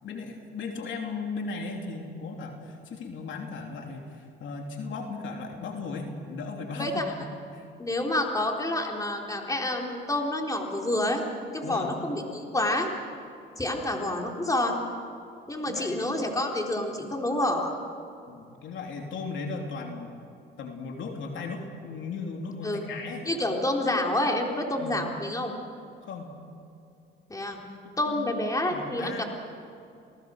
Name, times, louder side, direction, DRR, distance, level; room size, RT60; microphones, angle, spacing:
voice 1, 0.0-7.7 11.6-11.9 15.7-16.1 18.3-20.1 20.6-23.3 24.8-25.0 26.0-26.4 27.8-28.4 28.7-29.2, left 4 dB, 70° left, 2 dB, 3.1 m, -37 dB
voice 2, 6.8-7.1 7.8-11.2 11.5-12.9 13.6-14.8 15.5-17.7 22.6-22.8 23.2-25.5 27.3-27.6 28.0-29.2, left 1 dB, 15° left, 1 dB, 3.9 m, -28 dB
29.5 x 19.0 x 6.5 m, 2.6 s
cardioid pair, 90°, 20 cm